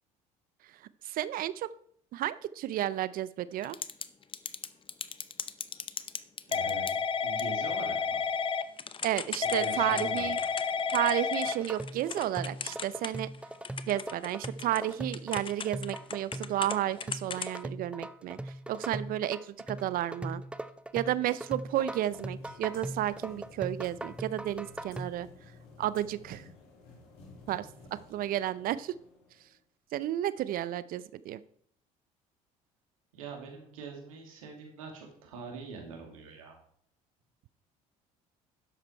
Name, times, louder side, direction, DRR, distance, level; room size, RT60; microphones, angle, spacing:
voice 1, 1.0-1.7 2.1-3.8 9.0-10.4 10.9-13.3 13.9-20.4 20.9-25.3 25.8-26.5 27.5-29.0 29.9-31.4, right 13 dB, 60° right, 17 dB, 0.5 m, -32 dB
Typing / Telephone, 3.6-4.0 4.3-13.4 13.6-16.8 17.0-17.6, left 6 dB, 30° left, 0.8 m, -32 dB
voice 2, 6.5-6.9 7.2-8.2 9.5-10.3 33.1-36.5, right 4 dB, 90° right, 1 dB, 2.7 m, -43 dB
sound 1, 11.4-25.1, right 1 dB, 5° right, 0.6 m, -40 dB
sound 2, 21.3-29.6, left 3 dB, 70° left, 3.5 m, -54 dB
11.0 x 7.4 x 4.4 m, 0.63 s
hypercardioid pair, 70°, 17 cm